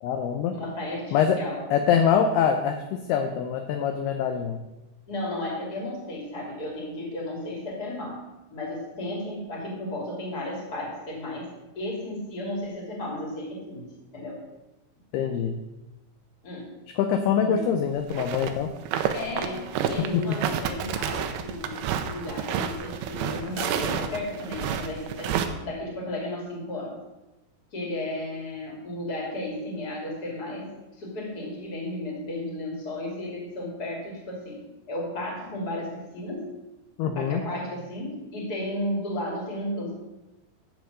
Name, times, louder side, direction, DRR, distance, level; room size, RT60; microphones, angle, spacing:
voice 1, 0.0-0.6 1.1-1.4 1.7-4.6 15.1-15.6 17.0-18.7 20.1-20.4 37.0-37.4, left 7 dB, 80° left, 6 dB, 2.4 m, -24 dB
voice 2, 0.5-1.6 5.1-8.2 8.5-11.5 11.7-14.4 16.4-16.7 17.4-17.6 19.1-25.3 25.6-27.0 27.7-34.6 34.9-36.5 37.0-39.9, left 1 dB, 25° left, -2 dB, 2.7 m, -34 dB
sound 1, 18.1-18.5 18.8-25.5, right 8 dB, 80° right, 2.3 m, -29 dB
13.5 x 4.7 x 7.5 m, 1.0 s
omnidirectional pair, 5.3 m